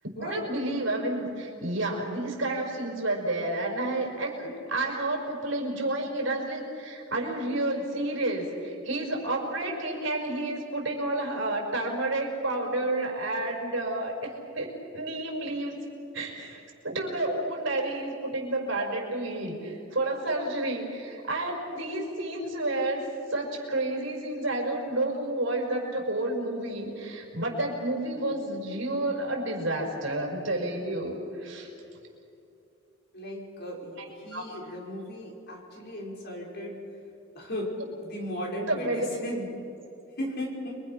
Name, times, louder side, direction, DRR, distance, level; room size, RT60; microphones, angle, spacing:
voice 1, 0.0-15.8 16.1-31.7 34.0-34.1 34.3-34.5 38.7-39.1, right 2 dB, 70° right, -1 dB, 5.7 m, -30 dB
voice 2, 33.1-36.8 37.3-37.7 38.0-39.5 40.2-40.8, left 1 dB, 55° left, -2 dB, 5.7 m, -36 dB
29.5 x 23.5 x 6.0 m, 2.7 s
head